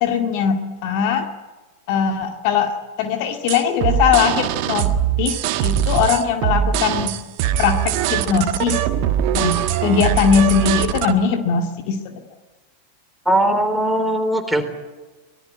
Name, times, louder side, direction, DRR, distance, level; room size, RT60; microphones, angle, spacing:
voice 1, 0.0-1.3 1.9-4.9 5.2-7.2 7.6-8.8 9.3-12.1, left 7 dB, 45° left, 6 dB, 2.1 m, -20 dB
sound 1, 3.5-11.1, right 10 dB, 45° right, 1.6 m, -21 dB
voice 2, 13.3-14.6, right 1 dB, 5° right, 6 dB, 3.6 m, -19 dB
24.5 x 19.5 x 9.5 m, 1.2 s
figure-of-eight pair, 90°, 0 cm